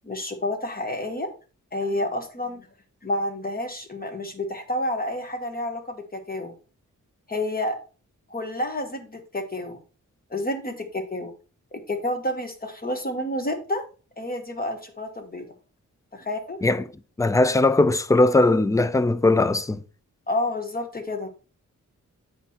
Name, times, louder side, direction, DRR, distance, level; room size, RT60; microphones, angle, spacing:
voice 1, 0.0-1.3 1.7-2.7 3.0-6.5 7.3-7.8 8.3-9.8 10.3-11.3 11.7-13.8 14.2-15.5 16.1-16.6 20.3-21.3, left 1 dB, 30° left, 1.1 m, -29 dB
voice 2, 17.2-19.8, left 2 dB, 10° left, 0.3 m, -19 dB
8.1 x 4.8 x 2.8 m
wide cardioid pair, 130°, 31 cm